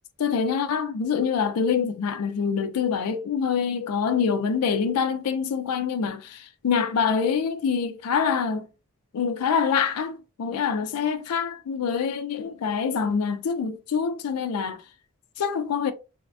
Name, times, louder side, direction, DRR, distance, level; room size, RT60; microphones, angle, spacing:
voice 1, 0.2-6.2 6.6-8.7 9.1-14.8 15.4-15.9, left 6 dB, 90° left, 0.4 m, -25 dB
3.3 x 2.1 x 2.4 m
head